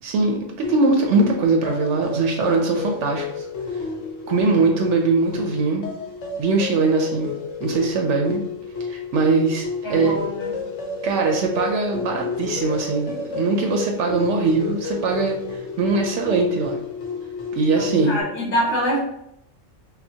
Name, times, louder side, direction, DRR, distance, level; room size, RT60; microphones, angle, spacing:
voice 1, 0.0-3.5 4.3-5.8 6.4-7.3 7.6-8.4 8.9-10.1 11.0-16.8 17.5-18.2, right 3 dB, 75° right, 2 dB, 0.9 m, -21 dB
sound 1, 0.6-18.2, left 4 dB, 70° left, 1.0 m, -31 dB
voice 2, 9.8-10.6 17.7-19.0, equal, 50° left, -4 dB, 1.4 m, -25 dB
5.7 x 2.2 x 2.7 m, 0.79 s
omnidirectional pair, 1.3 m